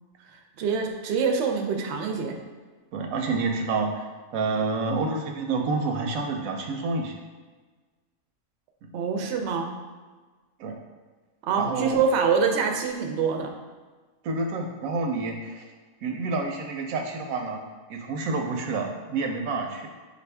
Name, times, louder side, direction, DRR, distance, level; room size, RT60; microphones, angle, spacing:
voice 1, 0.6-2.4 8.9-9.7 11.4-13.5, right 5 dB, 65° right, 3 dB, 0.7 m, -25 dB
voice 2, 2.9-4.1 4.3-7.2 8.8-8.9 10.6-10.8 11.6-12.0 14.2-15.7 16.0-17.6 17.9-19.9, right 3 dB, 90° right, 3 dB, 1.0 m, -28 dB
5.1 x 2.5 x 3.3 m, 1.4 s
omnidirectional pair, 1.4 m